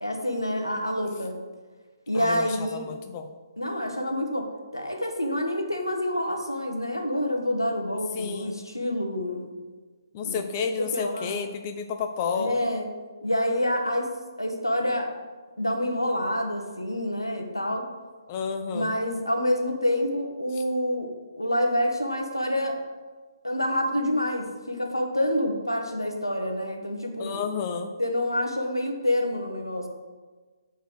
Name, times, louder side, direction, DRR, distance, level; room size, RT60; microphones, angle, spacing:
voice 1, 0.0-1.4 2.1-2.8 3.6-9.5 10.2-10.4 10.8-11.4 12.3-12.9 13.2-14.1 14.4-15.1 15.6-17.9 18.7-22.8 23.4-27.4 28.0-29.9, left 1 dB, 90° left, 3 dB, 1.3 m, -27 dB
voice 2, 2.1-3.3 8.1-8.6 10.1-12.6 18.3-19.0 27.2-27.9, left 6 dB, 30° left, 6 dB, 0.5 m, -31 dB
9.0 x 4.5 x 4.8 m, 1.4 s
figure-of-eight pair, 135°, 2 cm